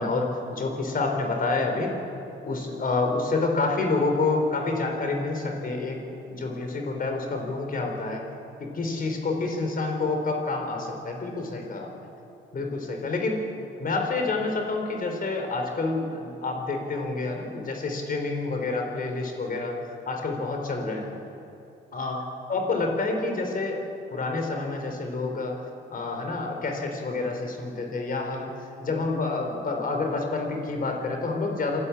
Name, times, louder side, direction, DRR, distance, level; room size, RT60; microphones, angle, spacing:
voice 1, 0.0-1.9 2.4-8.3 8.6-11.9 12.5-13.4 13.8-21.2 21.9-28.5 28.8-31.8, left 3 dB, 45° left, 3 dB, 4.4 m, -28 dB
27.5 x 12.5 x 8.7 m, 2.9 s
cardioid pair, 90°, 20 cm